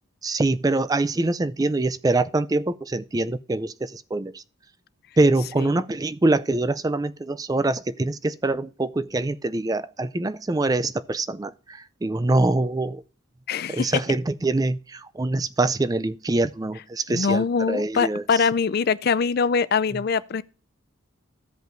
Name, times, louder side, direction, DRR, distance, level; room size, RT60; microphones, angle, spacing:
voice 1, 0.2-4.4 5.2-13.0 13.7-18.4 19.9-20.0, right 2 dB, 15° right, 0.4 m, -24 dB
voice 2, 13.5-14.0 17.1-20.4, left 5 dB, 50° left, 0.4 m, -23 dB
15.5 x 5.2 x 2.6 m
head